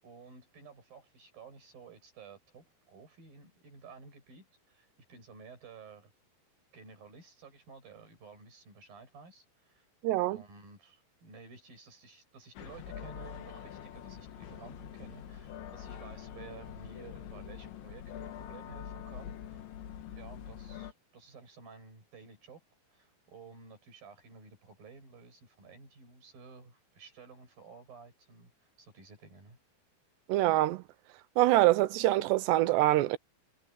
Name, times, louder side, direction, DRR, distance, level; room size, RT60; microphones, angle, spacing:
voice 1, 0.0-6.1 6.7-9.9 10.3-19.6 20.0-22.6 22.9-29.6, right 4 dB, 50° right, 8.8 m, -53 dB
voice 2, 10.0-10.4 30.3-30.8 31.4-33.2, right 16 dB, 80° right, 2.7 m, -25 dB
sound 1, 12.6-20.9, left 9 dB, 80° left, 4.4 m, -45 dB
omnidirectional pair, 5.2 m